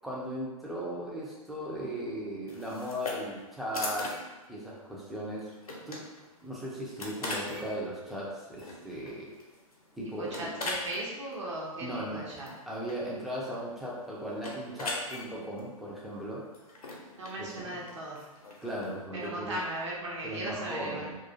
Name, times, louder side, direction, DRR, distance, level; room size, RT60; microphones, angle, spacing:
voice 1, 0.0-4.2 4.5-5.5 5.9-6.0 6.4-9.3 10.0-10.5 11.8-12.3 12.7-16.4 17.4-17.8 18.6-19.6 20.2-21.2, equal, ahead, -6 dB, 0.3 m, -37 dB
sound 1, 2.5-19.0, left 2 dB, 75° left, 0.6 m, -42 dB
voice 2, 10.2-12.5 17.2-18.2 19.2-21.1, right 1 dB, 50° right, -4 dB, 0.6 m, -37 dB
2.3 x 2.3 x 2.6 m, 1.2 s
figure-of-eight pair, 110°, 19 cm